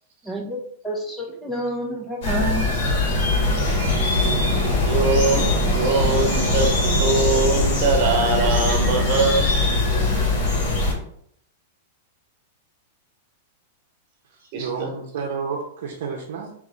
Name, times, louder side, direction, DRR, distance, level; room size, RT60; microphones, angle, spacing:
voice 1, 0.3-0.6 0.8-2.7, equal, 5° left, -2 dB, 0.8 m, -28 dB
sound 1, 2.2-10.9, left 2 dB, 60° left, 1.6 m, -21 dB
voice 2, 4.8-5.5 5.7-9.5 10.2-10.4 14.5-14.9, right 4 dB, 45° right, 2 dB, 1.3 m, -22 dB
voice 3, 14.4-16.5, right 5 dB, 75° right, -2 dB, 0.8 m, -30 dB
3.5 x 3.0 x 3.9 m, 0.66 s
supercardioid pair, 155°, 0 cm